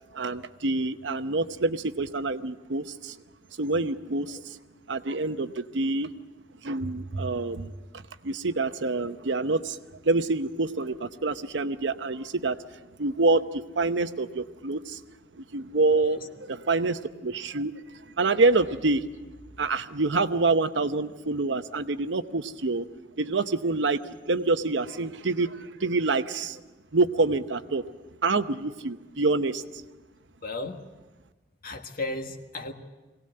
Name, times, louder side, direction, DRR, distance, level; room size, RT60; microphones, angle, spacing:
voice 1, 0.1-3.2 3.6-4.4 4.9-6.1 6.6-7.7 8.2-9.8 10.0-12.6 13.0-15.0 15.5-17.7 18.2-19.0 19.6-22.9 23.2-24.0 24.3-26.6 26.9-27.9 28.2-29.6, right 3 dB, 75° right, 10 dB, 0.9 m, -26 dB
voice 2, 15.9-16.2 30.4-30.8 31.6-32.7, left 2 dB, 55° left, 5 dB, 1.6 m, -35 dB
22.5 x 18.0 x 7.8 m, 1.2 s
head